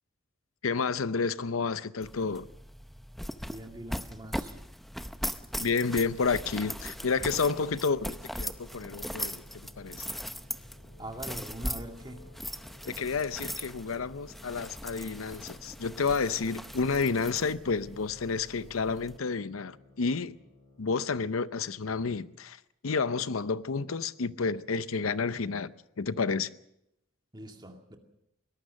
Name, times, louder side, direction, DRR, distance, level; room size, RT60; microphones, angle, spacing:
voice 1, 0.6-2.5 5.6-9.4 9.8-10.0 12.9-20.4 20.8-22.6 22.8-25.7 26.0-26.5, left 4 dB, 85° left, 0.7 m, -30 dB
sound 1, 2.0-19.2, equal, ahead, 0.7 m, -40 dB
voice 2, 3.5-4.6 11.0-12.2 27.3-28.0, right 1 dB, 20° right, 2.3 m, -42 dB
sound 2, 6.7-21.3, left 2 dB, 20° left, 5.0 m, -58 dB
sound 3, 10.8-14.6, left 1 dB, 65° left, 2.6 m, -57 dB
22.5 x 18.5 x 6.5 m
head